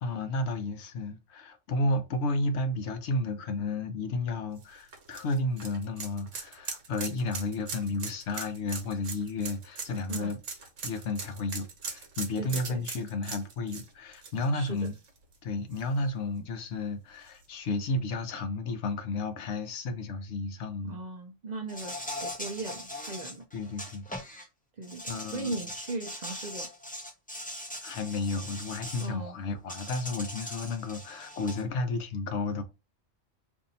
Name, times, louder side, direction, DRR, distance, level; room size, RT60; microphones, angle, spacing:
voice 1, 0.0-10.4 10.8-15.0 15.4-21.0 23.5-24.4 25.1-25.5 27.8-32.6, left 2 dB, 65° left, 0.9 m, -32 dB
sound 1, 4.6-15.3 15.7-15.8 17.3-17.4, right 5 dB, 85° right, 1.2 m, -40 dB
voice 2, 12.4-12.8 14.5-14.9 20.8-21.9 22.2-23.5 24.8-26.7 29.0-29.3, right 3 dB, 55° right, 0.5 m, -38 dB
Insect, 21.7-24.4 24.8-29.1 29.7-31.6, left 1 dB, 10° left, 0.5 m, -40 dB
2.7 x 2.6 x 4.0 m
omnidirectional pair, 1.2 m